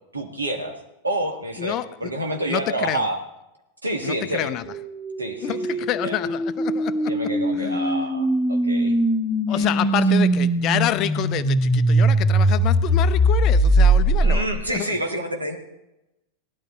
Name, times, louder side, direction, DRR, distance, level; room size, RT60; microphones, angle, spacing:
voice 1, 0.1-3.2 3.8-4.6 5.2-6.2 7.0-9.0 9.5-10.2 14.2-15.6, right 1 dB, 80° right, 2 dB, 2.1 m, -29 dB
voice 2, 1.6-2.1 2.5-3.1 4.0-4.6 5.4-7.2 7.5-7.8 9.5-14.5 14.7-14.9, left 12 dB, 35° left, 13 dB, 0.6 m, -28 dB
sound 1, 4.6-14.7, right 1 dB, ahead, 2.5 m, -21 dB
18.0 x 12.0 x 4.0 m, 0.92 s
figure-of-eight pair, 90°, 0 cm